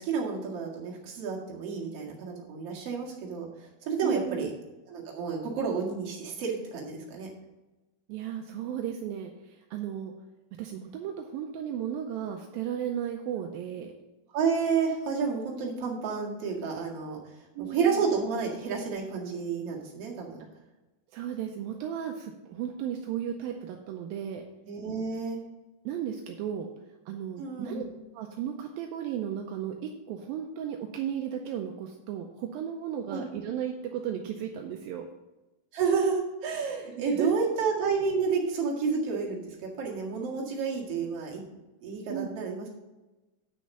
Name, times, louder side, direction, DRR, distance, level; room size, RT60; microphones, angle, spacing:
voice 1, 0.0-4.5 4.9-7.3 14.3-17.2 17.6-20.4 24.6-25.4 27.4-27.9 33.1-33.2 35.7-41.4 41.8-42.7, right 5 dB, 45° right, -3 dB, 2.4 m, -30 dB
voice 2, 4.0-4.5 8.1-10.1 10.6-13.9 17.6-18.1 21.1-24.4 25.9-26.7 27.1-27.9 28.1-35.1 36.9-37.3 42.1-42.3, right 9 dB, 80° right, 3 dB, 2.1 m, -35 dB
8.9 x 6.4 x 5.4 m, 1.1 s
omnidirectional pair, 4.7 m